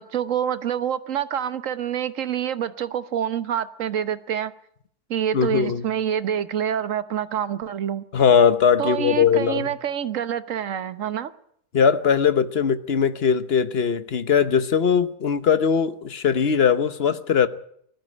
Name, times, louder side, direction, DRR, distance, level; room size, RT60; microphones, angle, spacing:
voice 1, 0.0-4.5 5.1-8.0 8.8-11.3, right 9 dB, 60° right, 1.3 m, -27 dB
voice 2, 5.3-5.9 8.1-9.7 11.7-17.5, left 7 dB, 45° left, 1.1 m, -20 dB
20.5 x 13.5 x 9.8 m
omnidirectional pair, 1.6 m